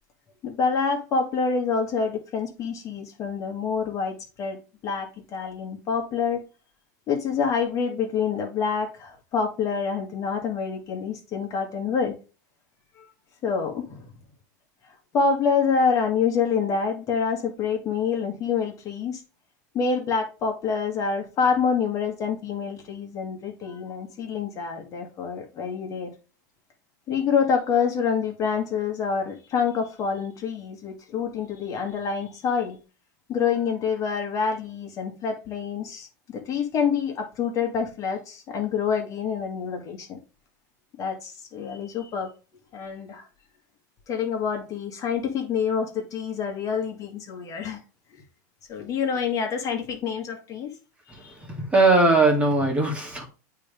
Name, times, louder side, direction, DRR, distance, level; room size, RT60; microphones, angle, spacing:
voice 1, 0.4-4.6 4.8-6.4 7.1-12.1 13.0-13.1 13.4-14.1 14.8-19.2 19.7-26.1 27.1-32.8 33.3-40.2 41.0-42.3 42.7-43.3 44.1-47.8 48.7-50.7 51.1-51.4, left 6 dB, 35° left, 2.0 m, -27 dB
voice 2, 51.5-53.3, right 2 dB, 15° right, 2.1 m, -19 dB
8.2 x 3.6 x 5.2 m
supercardioid pair, 125°, 10 cm